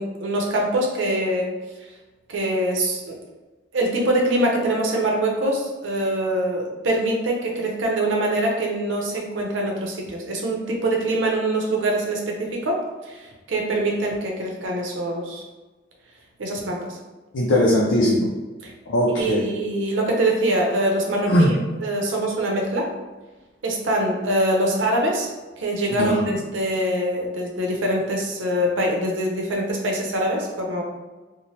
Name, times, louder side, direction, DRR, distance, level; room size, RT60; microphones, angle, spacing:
voice 1, 0.0-1.5 2.3-3.2 3.7-15.4 16.4-17.0 18.6-18.7 19.2-22.9 23.6-25.3 25.6-30.8, right 1 dB, 85° right, -1 dB, 0.6 m, -24 dB
voice 2, 17.3-18.3 18.9-19.5 21.3-21.5 26.0-26.3, left 1 dB, 90° left, -3 dB, 0.4 m, -19 dB
2.8 x 2.0 x 3.0 m, 1.2 s
head